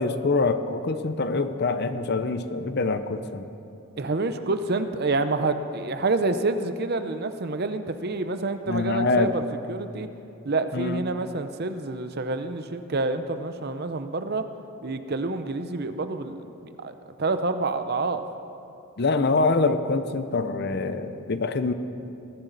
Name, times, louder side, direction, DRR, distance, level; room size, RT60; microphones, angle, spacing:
voice 1, 0.0-3.5 8.7-9.3 10.7-11.0 19.0-21.7, left 3 dB, 50° left, 10 dB, 0.7 m, -25 dB
voice 2, 4.0-9.4 9.7-10.1 10.4-14.4 14.8-18.2, right 3 dB, 45° right, 9 dB, 0.7 m, -28 dB
20.5 x 14.0 x 4.0 m, 2.7 s
head